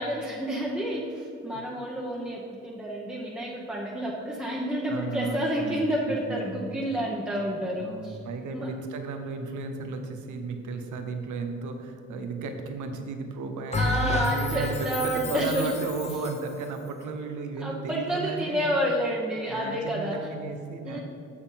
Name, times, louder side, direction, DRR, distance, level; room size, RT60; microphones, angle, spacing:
voice 1, 0.0-8.2 8.5-8.7 13.8-15.7 17.6-20.3 20.8-21.0, equal, 5° right, -4 dB, 1.1 m, -29 dB
voice 2, 4.9-6.4 6.7-6.8 7.8-18.7 19.5-21.0, right 4 dB, 75° right, 5 dB, 1.1 m, -34 dB
Bell, 13.7-16.5, left 1 dB, 20° left, 0.7 m, -30 dB
7.0 x 6.6 x 5.7 m, 2.7 s
cardioid pair, 90°, 30 cm